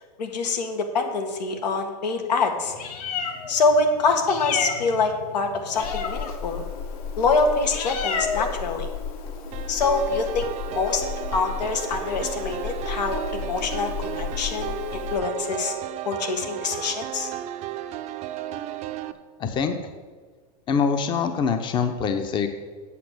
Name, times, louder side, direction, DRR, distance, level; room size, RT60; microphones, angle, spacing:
voice 1, 0.2-2.7 3.5-6.6 7.2-8.9 9.7-11.0 11.3-15.7 16.1-17.3, left 4 dB, 85° left, 5 dB, 1.8 m, -25 dB
Meow, 2.6-15.2, left 6 dB, 60° left, 1.6 m, -32 dB
sound 1, 9.5-19.1, right 13 dB, 30° right, 0.6 m, -34 dB
voice 2, 19.4-19.8 20.7-22.5, left 6 dB, 20° left, 8 dB, 0.8 m, -24 dB
8.5 x 6.3 x 7.8 m, 1.5 s
hypercardioid pair, 130°, 21 cm